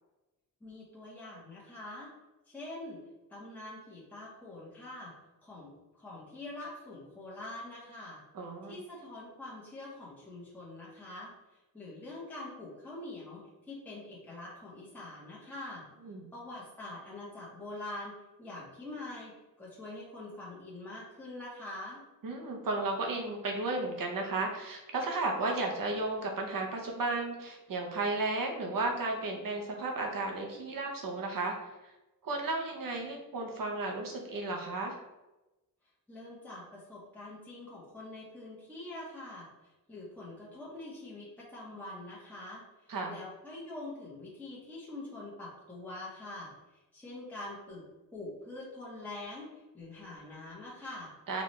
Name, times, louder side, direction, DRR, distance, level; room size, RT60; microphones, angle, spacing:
voice 1, 0.6-2.1 2.5-3.0 3.3-5.1 5.4-8.2 8.7-11.3 11.7-13.4 13.7-15.8 16.3-22.0 36.1-39.5 39.9-42.6 43.1-46.5 46.9-47.8 48.1-49.5 49.7-51.1, left 2 dB, 5° left, -7 dB, 0.9 m, -44 dB
voice 2, 8.3-8.8 16.1-16.3 22.2-31.5 32.2-35.0 42.9-43.2 51.3-51.4, right 2 dB, 65° right, 1 dB, 0.8 m, -34 dB
4.0 x 2.3 x 3.1 m, 1.0 s
wide cardioid pair, 100°, 36 cm